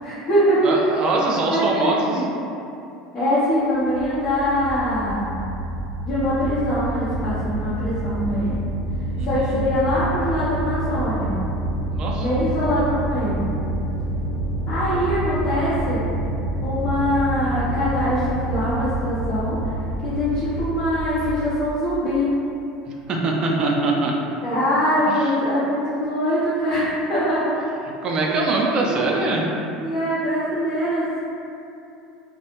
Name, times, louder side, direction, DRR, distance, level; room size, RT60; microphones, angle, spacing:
voice 1, 0.0-0.7 1.5-2.3 3.1-5.3 6.1-8.6 9.2-11.4 12.2-13.6 14.7-16.0 16.6-19.7 20.0-22.3 24.4-27.5 28.8-28.9 29.8-31.2, equal, 40° left, -12 dB, 0.7 m, -23 dB
voice 2, 0.6-2.1 9.1-9.6 11.9-12.3 22.9-24.1 25.1-25.3 28.0-29.5, right 3 dB, 35° right, -1 dB, 0.4 m, -23 dB
sound 1, 3.6-21.5, right 1 dB, 85° left, 0.4 m, -28 dB
2.4 x 2.0 x 2.9 m, 2.7 s
figure-of-eight pair, 70°, 2 cm